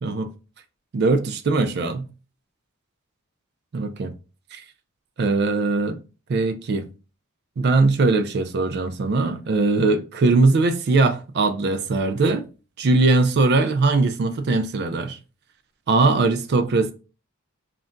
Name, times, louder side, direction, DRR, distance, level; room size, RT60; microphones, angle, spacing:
voice 1, 0.0-0.3 0.9-2.1 3.7-4.1 4.5-4.6 5.2-6.0 6.3-6.9 7.6-12.4 12.8-15.2 15.9-16.9, right 3 dB, 50° right, 0.4 m, -20 dB
2.4 x 2.2 x 3.7 m
head